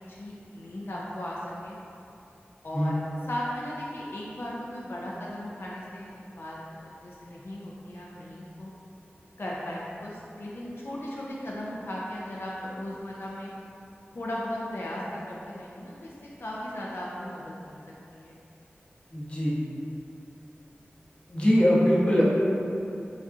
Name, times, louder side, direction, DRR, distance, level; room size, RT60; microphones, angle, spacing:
voice 1, 0.1-1.8 2.6-8.7 9.4-13.5 14.1-16.1 16.4-17.8 18.1-18.4, left 1 dB, 65° left, -5 dB, 0.4 m, -37 dB
voice 2, 19.1-19.6 21.3-22.2, equal, 30° left, -7 dB, 0.8 m, -22 dB
4.0 x 2.4 x 2.4 m, 2.7 s
wide cardioid pair, 50°, 4 cm